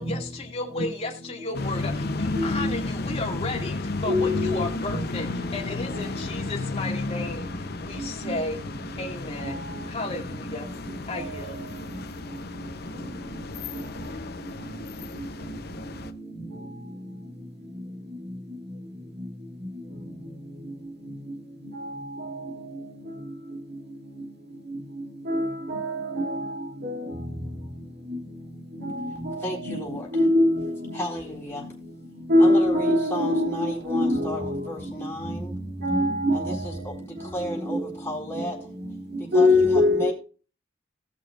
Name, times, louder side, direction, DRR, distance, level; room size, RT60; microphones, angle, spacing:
voice 1, 0.0-8.6 9.0-10.7 11.1-11.6, left 2 dB, 35° left, 2.3 m, -34 dB
sound 1, 1.5-16.1, left 2 dB, 60° left, 0.8 m, -33 dB
voice 2, 2.3-2.7 4.1-4.6 4.9-5.0 5.9-6.4 7.9-8.3 9.4-9.9 11.1-31.0 31.6-34.7 35.0-36.9 37.2-37.3 37.7-37.9 38.4-38.5 39.1-40.1, left 1 dB, 60° right, 2.0 m, -28 dB
voice 3, 29.4-30.3 30.9-31.7 32.4-35.6 36.3-38.7 39.2-40.1, equal, 15° left, 4.1 m, -34 dB
18.0 x 6.4 x 2.5 m
head